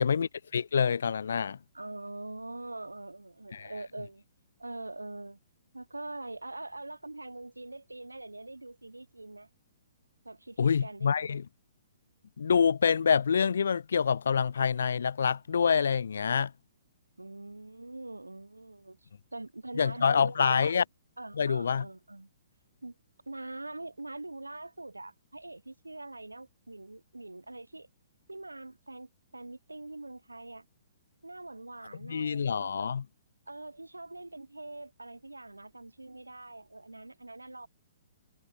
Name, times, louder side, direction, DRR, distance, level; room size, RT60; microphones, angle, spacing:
voice 1, 0.0-1.6 3.5-3.7 10.6-11.4 12.4-16.5 19.8-20.8 21.4-21.8 32.0-33.0, left 6 dB, 65° left, 0.3 m, -26 dB
voice 2, 1.7-4.2 4.6-5.4 5.7-9.5 10.2-11.4 17.2-20.8 21.2-22.3 22.8-23.0 23.3-27.9 28.3-30.7 31.2-32.9 33.5-37.7, right 2 dB, 85° right, 0.7 m, -43 dB
figure-of-eight pair, 120°, 0 cm